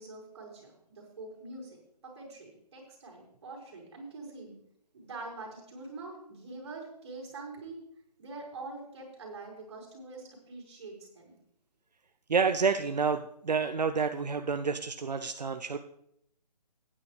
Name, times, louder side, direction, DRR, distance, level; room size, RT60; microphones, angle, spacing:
voice 1, 0.0-1.8 2.0-4.6 4.9-7.8 8.2-11.3, right 3 dB, 40° right, -1 dB, 5.3 m, -44 dB
voice 2, 12.3-15.8, right 5 dB, 80° right, 8 dB, 0.7 m, -29 dB
16.5 x 9.8 x 3.3 m, 0.74 s
figure-of-eight pair, 155°, 21 cm